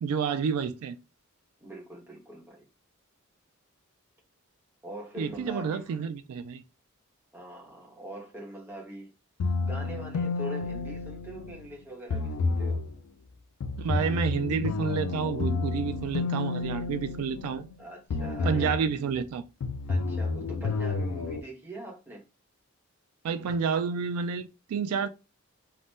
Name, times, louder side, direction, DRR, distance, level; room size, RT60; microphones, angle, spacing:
voice 1, 0.0-1.0 5.2-6.6 13.8-17.7 18.4-19.4 23.2-25.1, right 6 dB, 75° right, 0.3 m, -29 dB
voice 2, 1.6-2.6 4.8-6.1 7.3-9.1 9.6-12.8 17.8-19.0 19.9-22.2, right 1 dB, 10° right, 0.8 m, -43 dB
sound 1, 9.4-11.6 12.1-12.9 13.6-17.7 18.1-18.9 19.6-21.4, left 3 dB, 70° left, 0.3 m, -30 dB
2.7 x 2.0 x 3.4 m
head